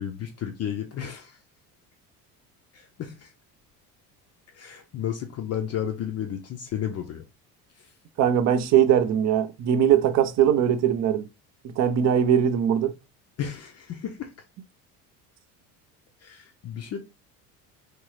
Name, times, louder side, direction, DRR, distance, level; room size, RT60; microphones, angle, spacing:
voice 1, 0.0-1.4 2.7-3.3 4.5-7.2 7.8-7.9 13.4-14.3 16.2-17.0, left 9 dB, 35° left, 0.5 m, -33 dB
voice 2, 8.2-11.3 11.8-12.9, right 9 dB, 35° right, 0.5 m, -21 dB
3.0 x 2.6 x 3.1 m
hypercardioid pair, 70°, 48 cm